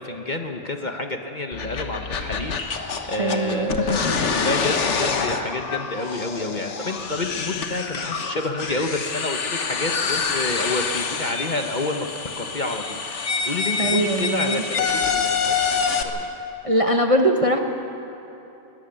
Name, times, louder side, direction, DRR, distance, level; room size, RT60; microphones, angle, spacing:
voice 1, 0.0-4.0 4.3-12.1 12.4-16.3, left 2 dB, 35° left, 4 dB, 1.0 m, -29 dB
sound 1, 1.5-16.0, left 5 dB, 55° left, 1.4 m, -26 dB
voice 2, 3.2-3.7 13.8-14.6 16.6-17.6, right 1 dB, 25° right, 3 dB, 1.0 m, -21 dB
21.0 x 12.5 x 9.9 m, 3.0 s
omnidirectional pair, 1.5 m